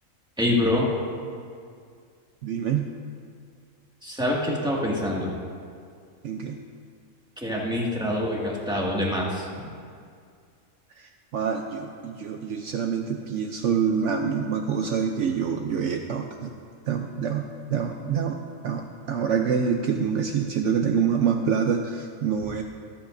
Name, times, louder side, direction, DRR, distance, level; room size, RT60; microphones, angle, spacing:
voice 1, 0.4-0.9 4.0-5.3 7.4-9.7, left 1 dB, 5° right, -4 dB, 1.9 m, -25 dB
voice 2, 2.4-2.9 6.2-6.6 11.0-16.5 16.9-22.6, right 7 dB, 65° right, 4 dB, 0.9 m, -26 dB
24.0 x 8.9 x 2.6 m, 2.2 s
omnidirectional pair, 1.4 m